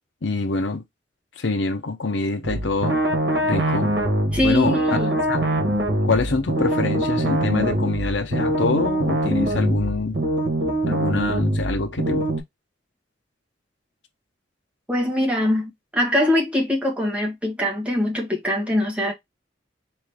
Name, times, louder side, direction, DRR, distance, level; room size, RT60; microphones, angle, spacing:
voice 1, 0.2-0.8 1.4-3.0 3.4-3.9 4.4-5.0 5.3-5.4 6.0-10.2 10.9-12.2, left 3 dB, 80° left, 0.7 m, -25 dB
sound 1, 2.4-12.4, right 1 dB, 65° right, 1.4 m, -23 dB
voice 2, 4.3-5.1 5.5-6.0 14.9-19.1, left 1 dB, 5° right, 1.4 m, -23 dB
3.9 x 3.1 x 3.4 m
head